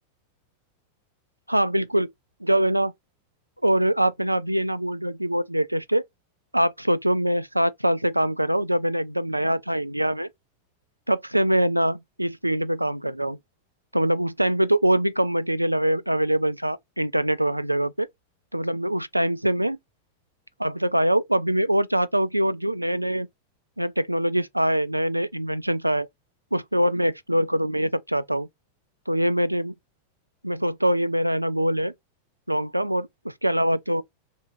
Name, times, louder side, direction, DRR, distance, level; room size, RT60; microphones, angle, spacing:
voice 1, 1.5-2.1 2.4-2.9 3.6-6.0 6.5-10.3 11.1-13.4 13.9-18.1 18.5-19.8 20.6-23.3 23.8-26.1 26.5-28.5 29.1-29.7 30.4-31.9 32.5-34.0, right 1 dB, 85° right, 0.3 m, -23 dB
3.4 x 2.9 x 3.5 m
figure-of-eight pair, 90°, 0 cm